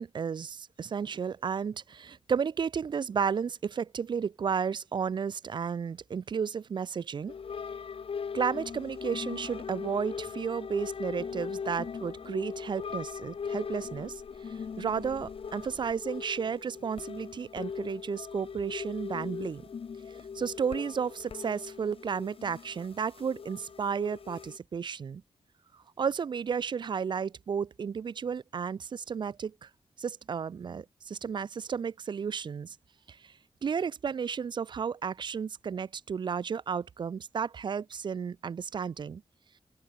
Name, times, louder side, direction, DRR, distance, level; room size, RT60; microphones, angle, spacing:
voice 1, 0.0-7.3 8.3-19.6 20.3-25.2 26.0-29.7 30.0-32.8 33.1-33.3 33.6-39.2, right 6 dB, 45° right, 0.4 m, -33 dB
sound 1, 7.3-24.6, left 6 dB, 60° left, 1.3 m, -40 dB
open air
wide cardioid pair, 130°, 11 cm